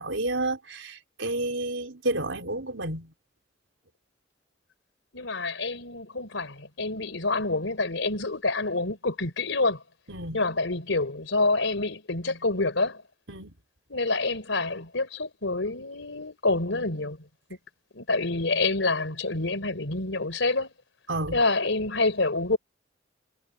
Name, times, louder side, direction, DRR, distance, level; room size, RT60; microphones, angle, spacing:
voice 1, 0.0-3.1 10.1-10.4 13.3-13.5 21.1-21.4, right 2 dB, 85° right, 4.1 m, -30 dB
voice 2, 5.1-9.8 10.3-13.0 13.9-17.2 17.9-20.7 21.3-22.6, left 3 dB, 85° left, 3.7 m, -27 dB
head